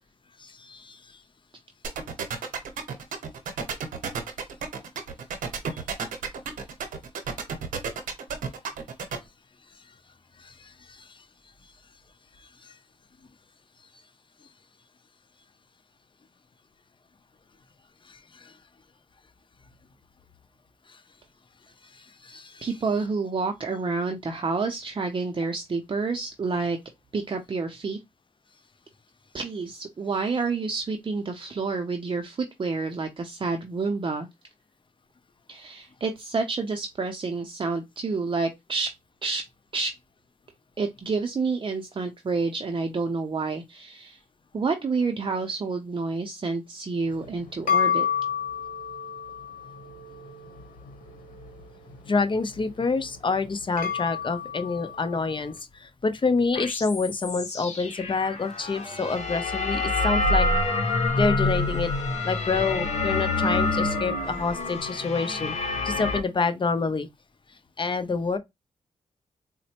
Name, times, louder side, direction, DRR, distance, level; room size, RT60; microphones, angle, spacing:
voice 1, 0.4-1.0 22.2-22.7 52.1-55.5 55.8-60.5 61.1-61.9 62.2-65.5 65.8-67.1 67.8-68.4, left 4 dB, 40° left, 0.6 m, -27 dB
sound 1, 1.8-9.2, right 6 dB, 85° right, 0.8 m, -31 dB
voice 2, 22.6-26.8 27.1-28.0 29.3-34.3 35.5-38.9 39.2-39.5 39.7-39.9 40.8-44.2 44.5-48.1, right 4 dB, 40° right, 0.6 m, -29 dB
sound 2, 47.0-55.5, left 8 dB, 80° left, 1.0 m, -32 dB
sound 3, 56.5-66.2, left 2 dB, 55° left, 1.0 m, -27 dB
4.0 x 2.1 x 2.9 m
cardioid pair, 60°, 14 cm